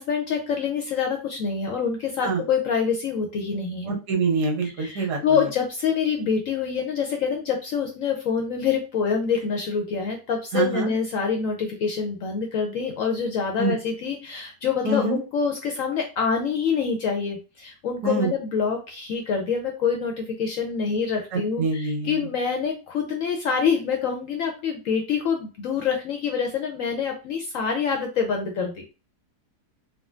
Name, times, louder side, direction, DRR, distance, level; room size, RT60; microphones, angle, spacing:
voice 1, 0.0-3.9 4.8-28.8, left 6 dB, 70° left, 3 dB, 0.8 m, -26 dB
voice 2, 3.9-5.2 10.5-10.9 13.6-13.8 14.8-15.2 18.0-18.3 21.3-22.2, right 3 dB, 75° right, 1 dB, 1.4 m, -25 dB
3.6 x 2.2 x 2.4 m, 0.32 s
omnidirectional pair, 1.8 m